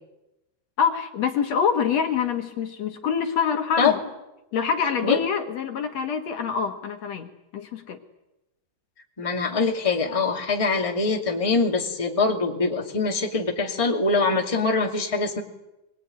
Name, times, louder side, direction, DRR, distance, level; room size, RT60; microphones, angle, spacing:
voice 1, 0.8-4.0 4.5-7.3 7.5-8.0, left 7 dB, 60° left, 5 dB, 2.6 m, -25 dB
voice 2, 9.2-15.4, left 4 dB, 10° left, 1 dB, 2.3 m, -23 dB
25.0 x 22.5 x 9.5 m, 0.94 s
omnidirectional pair, 3.5 m